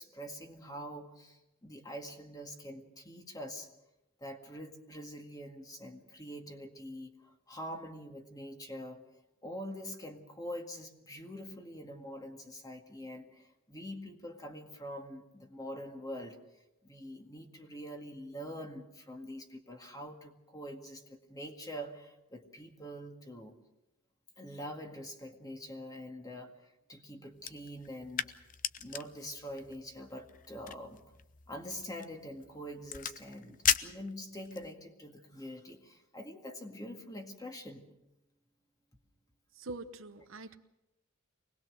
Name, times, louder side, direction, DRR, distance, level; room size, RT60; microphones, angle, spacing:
voice 1, 0.0-3.7 4.2-9.0 9.4-16.4 16.8-23.6 24.4-28.3 28.8-31.0 31.5-37.8, equal, 15° left, 3 dB, 2.0 m, -45 dB
sound 1, 27.4-34.7, left 9 dB, 40° left, 0.7 m, -38 dB
voice 2, 39.6-40.6, right 2 dB, 65° right, 9 dB, 1.0 m, -44 dB
24.5 x 19.5 x 6.4 m, 0.94 s
head